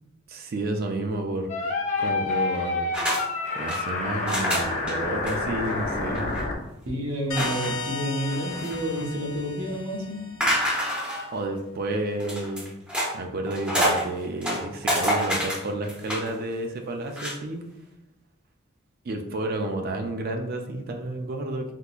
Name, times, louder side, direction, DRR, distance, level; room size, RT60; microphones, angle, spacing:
voice 1, 0.3-2.9 3.5-6.3 11.3-12.7 13.1-17.6 19.0-21.7, right 2 dB, 50° right, 4 dB, 0.4 m, -31 dB
sound 1, 1.5-6.5, left 3 dB, 35° left, 0.5 m, -28 dB
sound 2, 2.9-3.2 3.5-3.8 4.3-4.9 5.3-5.4 5.7-5.8 6.1-6.4 7.4-7.8 8.3-9.0 10.4-11.3 12.2-13.1 13.5-14.0 14.4-16.3 17.1-17.4, equal, 5° right, 0.6 m, -27 dB
voice 2, 6.8-10.4, equal, 85° right, -1 dB, 0.9 m, -29 dB
sound 3, 7.3-10.7, left 3 dB, 85° left, 0.7 m, -35 dB
3.6 x 2.8 x 2.4 m, 0.93 s
head